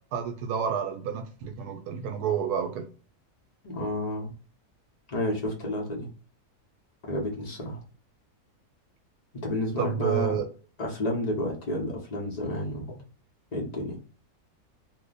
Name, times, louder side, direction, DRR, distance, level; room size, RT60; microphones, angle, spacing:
voice 1, 0.1-2.9 9.8-10.4, right 8 dB, 80° right, 5 dB, 1.1 m, -29 dB
voice 2, 3.6-4.3 5.1-6.1 7.1-7.8 9.3-10.4 10.8-13.0 13.5-14.0, left 1 dB, 40° left, -1 dB, 0.6 m, -31 dB
2.7 x 2.1 x 3.8 m, 0.39 s
omnidirectional pair, 1.7 m